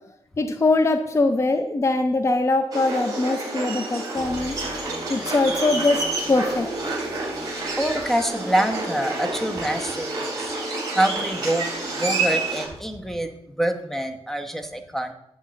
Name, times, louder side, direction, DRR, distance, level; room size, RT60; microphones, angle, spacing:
voice 1, 0.4-4.8 5.1-6.7, left 2 dB, 30° left, 7 dB, 0.6 m, -22 dB
sound 1, 2.7-12.7, right 2 dB, 35° right, 3.2 m, -29 dB
sound 2, 4.2-8.8, left 1 dB, 55° right, 2.7 m, -46 dB
voice 2, 7.8-10.5 10.9-11.7 11.9-13.3 13.6-15.1, right 1 dB, 5° left, 6 dB, 1.0 m, -25 dB
11.0 x 3.7 x 7.4 m, 0.82 s
wide cardioid pair, 115°, 10 cm